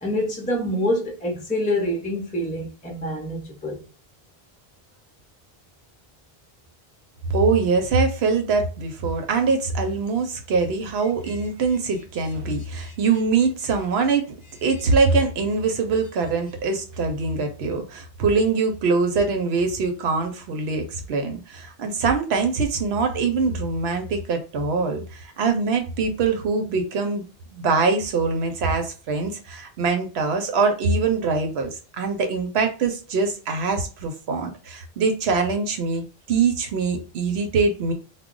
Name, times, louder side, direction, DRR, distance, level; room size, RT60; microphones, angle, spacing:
voice 1, 0.0-3.8 12.8-12.9, left 1 dB, 10° left, 0.5 m, -26 dB
voice 2, 7.3-14.3 14.6-27.2 27.5-31.7 32.0-37.9, right 4 dB, 85° right, 0.9 m, -23 dB
2.3 x 2.1 x 3.7 m
omnidirectional pair, 1.0 m